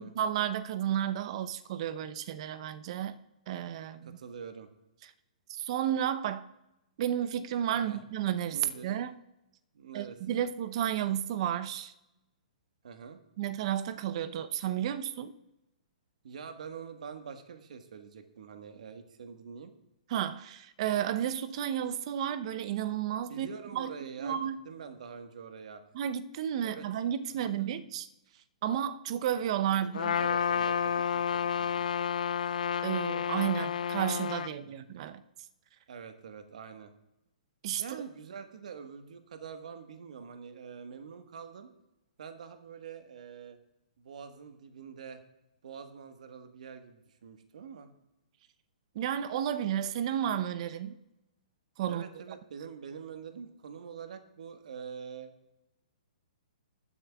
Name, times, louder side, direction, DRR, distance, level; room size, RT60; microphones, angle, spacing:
voice 1, 0.0-3.1 3.5-4.2 5.5-6.5 7.0-9.1 9.9-11.9 13.4-15.3 20.1-23.5 23.7-23.9 24.2-24.6 25.9-28.1 28.6-30.1 32.8-35.2 37.6-37.8 48.9-51.0 51.8-52.0, right 10 dB, 50° right, 12 dB, 0.7 m, -32 dB
voice 2, 4.0-4.7 7.7-8.0 8.5-8.9 9.7-10.4 12.8-13.2 16.2-19.7 23.3-25.8 26.6-26.9 27.3-27.9 29.7-31.8 34.6-34.7 35.9-36.9 37.8-41.7 42.2-43.6 44.0-45.2 45.6-47.9 51.9-55.3, right 6 dB, 65° right, 7 dB, 1.4 m, -45 dB
Trumpet, 29.9-34.5, left 8 dB, 75° left, 0.4 m, -30 dB
20.0 x 9.9 x 2.4 m, 0.94 s
hypercardioid pair, 130°, 4 cm